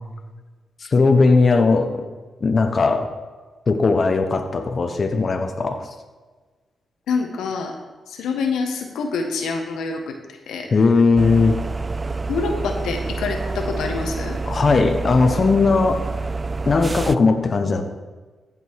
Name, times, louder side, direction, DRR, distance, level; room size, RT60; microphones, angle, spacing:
voice 1, 0.8-2.0 2.4-3.1 3.7-5.9 10.7-11.5 14.5-16.0 16.7-17.8, left 4 dB, 50° left, 6 dB, 1.0 m, -18 dB
voice 2, 7.1-7.8 8.1-10.7 12.3-14.4, left 4 dB, 85° left, 3 dB, 1.2 m, -26 dB
sound 1, 11.2-17.2, right 3 dB, 35° right, 0.4 m, -27 dB
15.0 x 5.4 x 4.7 m, 1.4 s
supercardioid pair, 55°, 0 cm